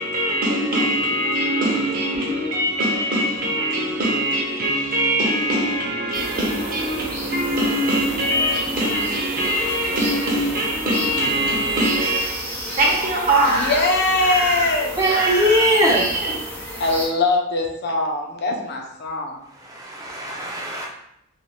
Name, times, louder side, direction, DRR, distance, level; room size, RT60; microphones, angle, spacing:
voice 1, 0.0-13.7 15.0-16.3, right 1 dB, 45° right, 0.7 m, -22 dB
sound 1, 6.1-17.1, equal, 5° left, 1.2 m, -31 dB
voice 2, 13.4-15.0 16.8-19.4, left 2 dB, 50° left, 0.5 m, -22 dB
voice 3, 14.9-16.1 19.5-20.9, equal, 15° right, 0.5 m, -21 dB
3.3 x 2.5 x 2.4 m
head